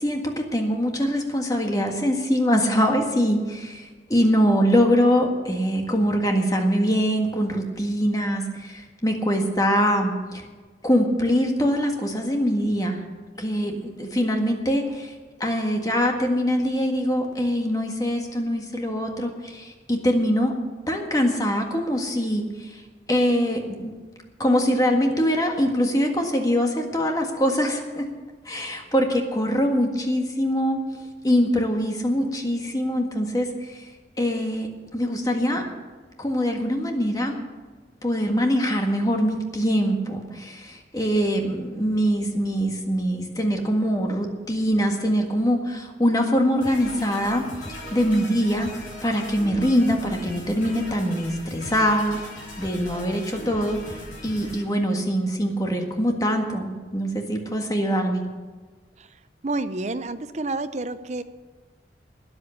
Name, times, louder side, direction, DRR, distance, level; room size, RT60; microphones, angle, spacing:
voice 1, 0.0-10.4 10.8-13.0 13.4-15.1 15.4-20.5 20.9-22.7 23.1-23.9 24.4-28.0 28.4-30.8 31.2-33.8 34.2-34.7 34.9-35.7 36.2-37.3 38.0-48.7 49.0-52.2 52.6-53.8 54.2-58.2, equal, 20° left, 2 dB, 1.7 m, -23 dB
sound 1, 46.6-54.6, left 1 dB, 50° left, 5.8 m, -39 dB
voice 2, 59.4-61.2, right 2 dB, 40° right, 11 dB, 0.7 m, -29 dB
13.0 x 9.7 x 7.1 m, 1.4 s
head